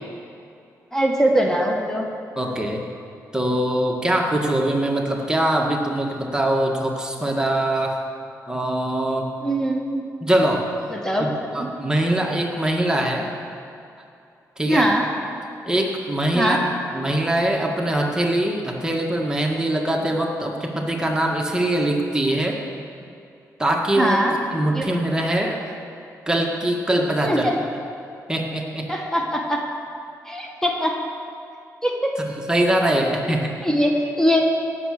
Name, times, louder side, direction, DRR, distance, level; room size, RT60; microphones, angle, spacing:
voice 1, 0.9-2.1 9.4-10.0 10.9-11.7 14.7-15.1 16.3-16.6 24.0-24.4 24.7-24.9 27.2-27.6 28.9-29.6 30.3-31.0 31.8-32.1 33.6-34.4, equal, 10° left, 0 dB, 1.7 m, -21 dB
voice 2, 2.4-2.8 3.3-8.0 8.5-9.3 10.2-10.7 11.2-11.3 11.5-13.3 14.6-14.9 15.7-16.6 16.9-22.6 23.6-25.6 26.3-27.5 28.3-28.9 32.2-33.7, right 1 dB, 10° right, 0 dB, 1.8 m, -22 dB
17.5 x 7.4 x 6.6 m, 2.6 s
cardioid pair, 70°, 7 cm